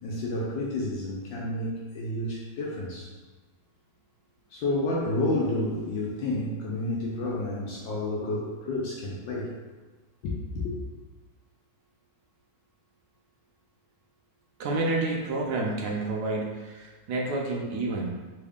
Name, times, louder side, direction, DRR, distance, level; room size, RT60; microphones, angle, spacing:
voice 1, 0.0-3.1 4.5-9.5 10.2-10.7, left 2 dB, 75° left, -4 dB, 1.2 m, -30 dB
voice 2, 14.6-18.1, right 2 dB, 85° right, -2 dB, 0.8 m, -29 dB
3.5 x 2.3 x 3.4 m, 1.3 s
omnidirectional pair, 2.3 m